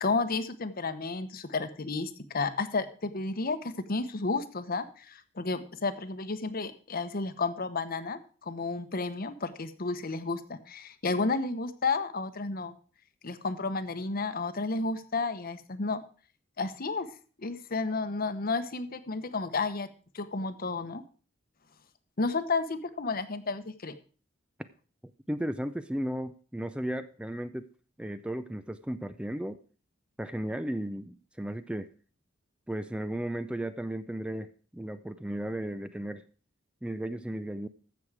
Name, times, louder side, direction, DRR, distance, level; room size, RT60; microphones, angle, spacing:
voice 1, 0.0-12.7 13.2-16.0 16.6-17.1 17.4-19.9 20.1-21.0 22.2-23.9, left 3 dB, 50° left, 11 dB, 1.0 m, -32 dB
voice 2, 25.3-27.7 28.0-29.6 30.2-31.9 32.7-36.2 36.8-37.7, right 1 dB, 5° right, 11 dB, 0.4 m, -35 dB
14.5 x 6.4 x 4.8 m, 0.40 s
head